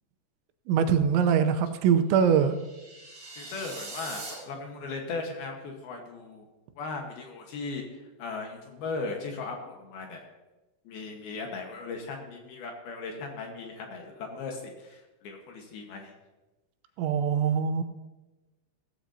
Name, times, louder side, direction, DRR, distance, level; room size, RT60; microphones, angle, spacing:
voice 1, 0.7-2.6 17.0-17.8, right 7 dB, 85° right, 9 dB, 3.0 m, -23 dB
sound 1, 2.3-4.3, right 3 dB, 55° right, 6.2 m, -42 dB
voice 2, 3.4-6.5 6.8-10.2 10.8-16.1, left 3 dB, 65° left, 2 dB, 2.8 m, -38 dB
16.5 x 14.5 x 2.8 m, 1.1 s
omnidirectional pair, 5.4 m